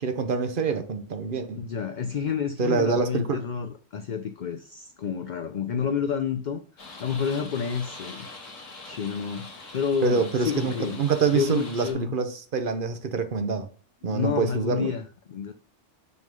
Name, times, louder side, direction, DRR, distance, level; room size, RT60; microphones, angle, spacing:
voice 1, 0.0-1.6 2.6-3.4 10.0-13.7 14.0-14.9, right 5 dB, 50° right, 0.9 m, -26 dB
voice 2, 1.6-6.6 7.0-8.3 8.9-11.0 11.3-12.2 14.1-15.5, left 7 dB, 60° left, 0.5 m, -29 dB
sound 1, 6.8-11.9, left 3 dB, 75° left, 1.9 m, -43 dB
6.0 x 3.7 x 5.2 m
omnidirectional pair, 1.3 m